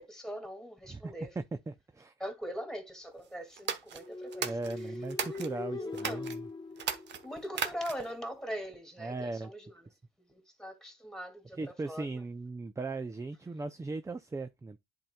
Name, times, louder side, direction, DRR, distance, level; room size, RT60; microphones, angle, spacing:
voice 1, 0.0-1.3 2.2-4.5 4.8-4.9 5.3-5.4 5.8-6.3 7.2-9.9 10.2-12.2, equal, 5° left, 2.2 m, -42 dB
voice 2, 0.9-2.1 4.4-6.5 9.0-9.5 11.5-14.8, right 3 dB, 15° right, 0.4 m, -38 dB
sound 1, 3.6-5.5 5.9-6.4 6.8-8.2, right 7 dB, 65° right, 1.0 m, -36 dB
sound 2, 3.9-7.8, left 3 dB, 20° left, 0.7 m, -41 dB
10.5 x 4.3 x 2.2 m
cardioid pair, 90°, 20 cm